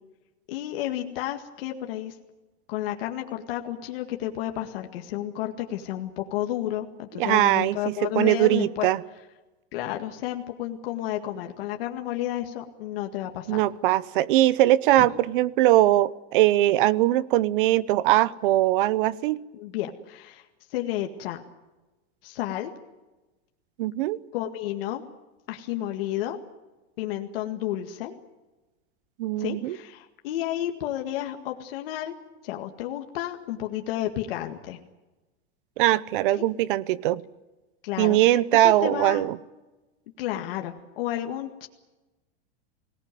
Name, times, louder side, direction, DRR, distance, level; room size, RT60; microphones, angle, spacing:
voice 1, 0.5-2.1 2.7-8.9 9.7-13.6 15.0-15.2 19.5-21.4 22.2-22.7 24.3-25.0 25.5-26.4 27.0-28.1 29.4-32.1 32.4-34.8 36.4-36.5 37.8-39.3 40.2-41.7, left 13 dB, 60° left, 4 dB, 2.0 m, -31 dB
voice 2, 7.2-9.0 13.5-19.4 23.8-24.2 29.2-29.8 35.8-37.2 38.0-39.4, right 15 dB, 55° right, 19 dB, 0.9 m, -21 dB
25.0 x 18.5 x 9.2 m, 1.1 s
supercardioid pair, 175°, 32 cm